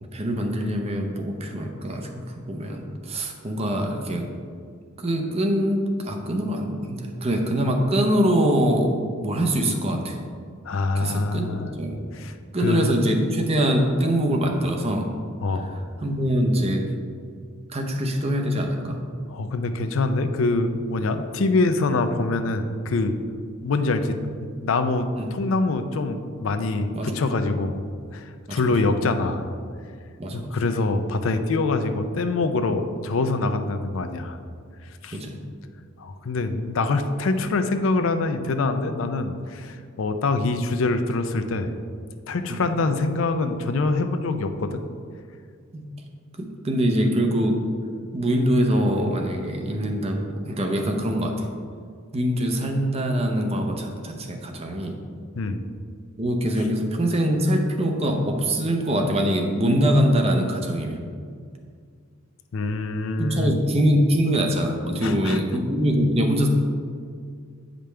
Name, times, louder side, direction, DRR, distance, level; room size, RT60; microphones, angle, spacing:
voice 1, 0.0-4.3 5.0-10.2 10.9-12.0 12.5-15.1 15.6-15.7 16.0-16.9 17.7-19.0 25.1-25.3 26.9-27.2 28.5-28.8 30.2-30.5 35.1-35.4 42.5-42.6 45.7-45.8 46.3-47.6 48.1-51.5 52.1-55.0 56.2-61.0 63.2-66.5, equal, 30° right, 3 dB, 0.7 m, -23 dB
voice 2, 10.7-11.7 12.1-12.3 12.6-12.9 15.4-15.8 19.3-23.2 23.6-24.2 24.6-27.8 28.1-29.5 30.3-34.4 35.0-35.2 36.0-41.7 42.3-44.8 55.4-55.6 62.5-63.5 65.0-65.4, left 3 dB, 70° left, 8 dB, 0.5 m, -24 dB
8.8 x 5.2 x 3.3 m, 2.1 s
head